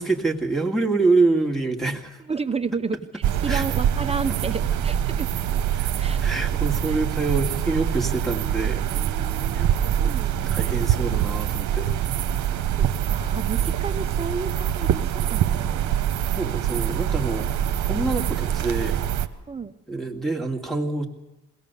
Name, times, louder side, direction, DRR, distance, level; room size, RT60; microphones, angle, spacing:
voice 1, 0.0-2.2 3.5-3.6 5.7-5.9 6.2-8.9 9.5-11.9 16.3-17.5 17.9-19.0 19.9-21.1, right 3 dB, ahead, 3 dB, 2.2 m, -26 dB
voice 2, 2.3-5.3 6.0-6.2 6.5-6.6 6.9-7.0 8.9-10.9 12.2-12.4 12.8-15.9 19.5-19.7, right 4 dB, 20° right, 8 dB, 0.8 m, -32 dB
sound 1, 3.2-19.3, right 10 dB, 75° right, 1.1 m, -24 dB
21.5 x 17.5 x 6.9 m, 1.1 s
cardioid pair, 90°, 30 cm